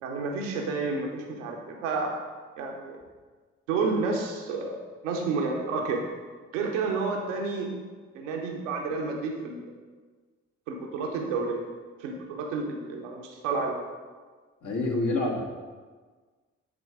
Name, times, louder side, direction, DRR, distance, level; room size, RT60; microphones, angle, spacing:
voice 1, 0.0-2.2 2.6-3.0 3.7-6.0 6.5-7.7 8.1-9.7 10.7-11.6 12.0-13.8, right 4 dB, 90° right, 1 dB, 1.0 m, -30 dB
voice 2, 14.6-15.4, left 2 dB, 55° left, 0 dB, 1.7 m, -27 dB
9.6 x 3.8 x 4.9 m, 1.5 s
hypercardioid pair, 40°, 36 cm